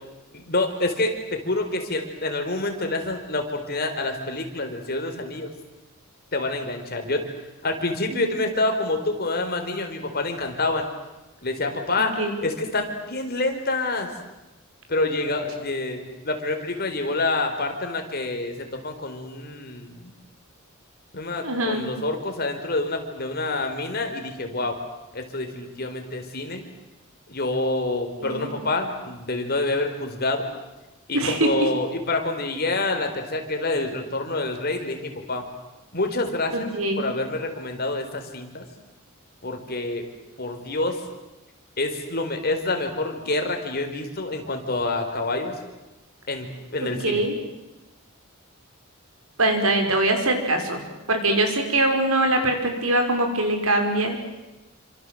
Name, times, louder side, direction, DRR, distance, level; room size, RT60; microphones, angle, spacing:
voice 1, 0.3-5.5 6.3-7.3 7.6-10.9 11.4-12.2 12.4-14.1 14.9-16.0 16.2-20.1 21.1-24.8 25.1-26.6 27.3-30.4 31.1-35.4 35.9-36.7 37.0-38.7 39.4-40.0 40.4-41.0 41.8-45.5 46.3-47.2, left 2 dB, 45° left, 5 dB, 4.2 m, -27 dB
voice 2, 21.4-21.9 28.2-28.5 31.1-31.7 36.5-37.1 46.8-47.4 49.4-50.8 51.1-54.2, right 2 dB, 85° right, 5 dB, 5.6 m, -23 dB
28.5 x 26.0 x 7.9 m, 1.1 s
head